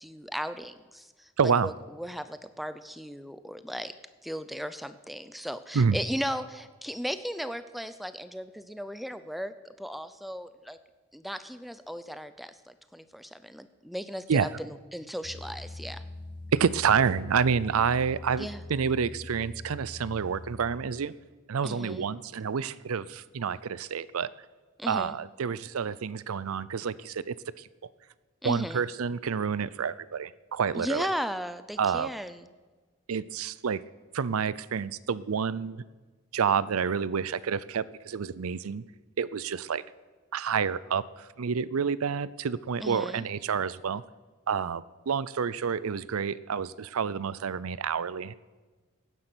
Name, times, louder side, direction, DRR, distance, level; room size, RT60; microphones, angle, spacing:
voice 1, 0.0-1.3 1.6-3.9 4.2-10.8 11.1-16.0 18.4-18.6 21.6-22.1 24.8-25.2 28.4-28.8 30.8-32.5 42.8-43.2, equal, ahead, 12 dB, 0.5 m, -36 dB
voice 2, 1.4-1.7 5.7-6.0 14.3-14.5 16.5-21.1 21.5-24.3 24.9-27.7 28.4-31.0 31.8-32.1 33.1-33.8 34.1-35.8 36.3-38.8 39.2-39.8 40.3-44.0 44.5-48.3, right 6 dB, 85° right, 18 dB, 0.5 m, -28 dB
sound 1, 15.2-20.8, left 2 dB, 40° left, 1.1 m, -43 dB
16.0 x 9.8 x 6.2 m, 1.3 s
head